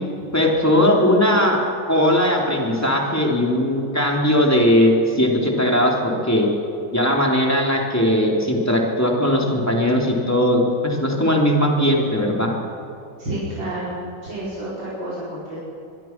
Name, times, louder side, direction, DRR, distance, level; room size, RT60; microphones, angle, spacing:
voice 1, 0.3-6.5 6.9-12.5, left 1 dB, 10° left, -1 dB, 3.5 m, -19 dB
voice 2, 13.2-14.0 14.2-15.6, right 1 dB, 75° right, -9 dB, 5.8 m, -29 dB
24.0 x 23.0 x 6.1 m, 2.6 s
omnidirectional pair, 2.1 m